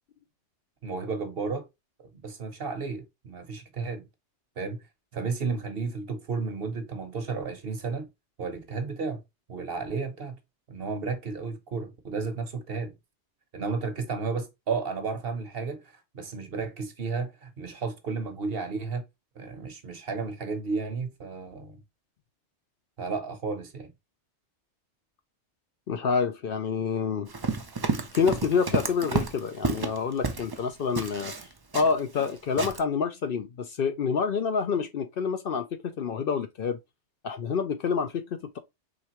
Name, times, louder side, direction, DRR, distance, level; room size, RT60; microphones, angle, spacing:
voice 1, 0.8-1.7 2.0-4.1 4.6-4.8 5.1-8.1 8.4-9.2 9.5-10.4 10.7-12.9 13.5-19.0 19.3-21.8 23.0-23.9, right 4 dB, 55° right, 1.1 m, -33 dB
voice 2, 25.9-27.3 28.1-31.3 31.7-36.8 37.2-38.6, left 5 dB, 60° left, 0.7 m, -27 dB
Run, 27.3-30.6 30.9-32.3 32.6-32.8, right 4 dB, 30° right, 0.4 m, -30 dB
5.0 x 3.4 x 2.9 m
omnidirectional pair, 1.2 m